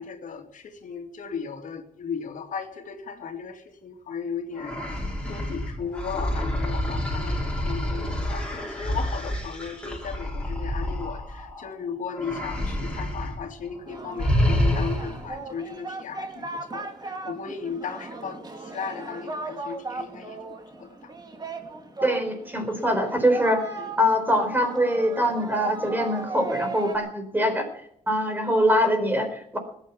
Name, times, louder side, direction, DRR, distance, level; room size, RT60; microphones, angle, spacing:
voice 1, 0.0-20.4 20.8-21.1 23.8-23.9, left 6 dB, 70° left, 2.5 m, -36 dB
sound 1, 4.5-11.7 12.1-13.4 13.6-13.8 14.2-15.3, left 1 dB, 5° left, 5.9 m, -28 dB
Singing, 13.9-27.0, right 3 dB, 30° right, 2.5 m, -37 dB
voice 2, 22.0-23.6 24.0-27.7 28.1-29.6, equal, 15° right, 4.3 m, -23 dB
20.0 x 9.2 x 7.2 m
wide cardioid pair, 135°, 14 cm